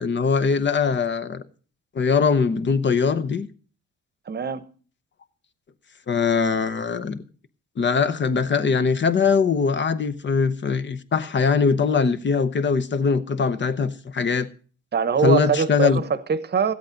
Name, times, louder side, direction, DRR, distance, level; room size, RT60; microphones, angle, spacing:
voice 1, 0.0-1.4 1.9-3.5 6.1-7.2 7.8-14.5 15.2-16.0, left 5 dB, 40° left, 0.8 m, -21 dB
voice 2, 4.3-4.6 14.9-16.7, right 6 dB, 35° right, 0.9 m, -23 dB
14.5 x 8.3 x 5.1 m
cardioid pair, 90°, 30 cm